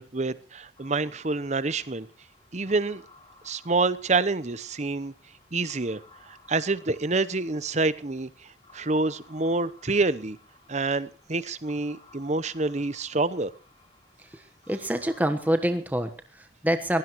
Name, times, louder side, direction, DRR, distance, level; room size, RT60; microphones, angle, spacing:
voice 1, 0.0-2.1 2.5-3.0 3.4-5.1 5.5-6.0 6.3-8.3 8.7-10.4 10.7-13.5, right 3 dB, 35° right, 16 dB, 0.8 m, -27 dB
sound 1, 0.8-15.6, left 3 dB, 25° left, 4.1 m, -57 dB
voice 2, 14.2-17.0, equal, 10° right, 7 dB, 1.2 m, -27 dB
22.0 x 17.0 x 3.1 m, 0.36 s
head